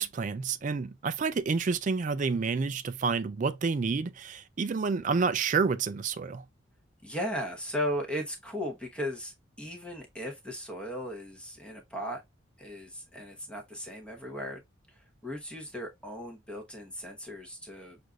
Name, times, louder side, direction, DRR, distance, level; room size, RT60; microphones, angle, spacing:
voice 1, 0.0-6.4, right 5 dB, 40° right, 0.4 m, -29 dB
voice 2, 7.0-12.2 12.6-14.6 14.9-18.0, equal, 5° left, 0.9 m, -37 dB
6.2 x 2.6 x 2.3 m
head